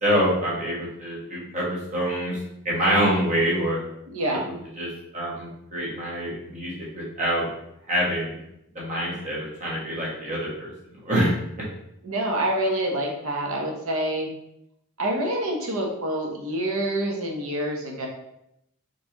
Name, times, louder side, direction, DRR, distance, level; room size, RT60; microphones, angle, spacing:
voice 1, 0.0-2.4 2.6-3.8 4.3-7.5 7.9-8.4 8.7-11.7, equal, 35° right, -5 dB, 1.3 m, -26 dB
voice 2, 4.1-4.4 12.0-14.3 15.0-18.1, right 1 dB, 80° right, 0 dB, 0.9 m, -27 dB
4.4 x 3.2 x 2.9 m, 0.80 s
head